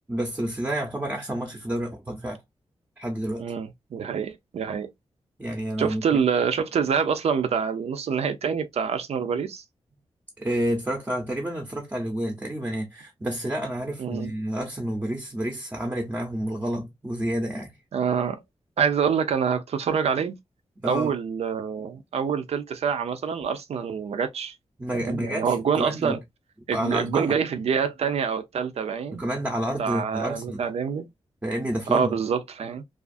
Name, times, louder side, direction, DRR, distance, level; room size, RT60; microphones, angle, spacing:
voice 1, 0.1-2.4 3.0-3.4 5.4-6.2 10.4-17.8 20.8-21.1 24.8-26.2 26.7-27.4 29.1-30.6 31.4-32.1, right 1 dB, 15° right, 0.6 m, -29 dB
voice 2, 3.4-4.9 5.8-9.6 14.0-14.3 17.9-18.4 18.8-20.4 20.8-24.5 25.0-26.2 26.7-29.2 29.8-31.1 31.9-32.8, right 6 dB, 75° right, 0.4 m, -26 dB
2.4 x 2.4 x 2.4 m
wide cardioid pair, 115°, 11 cm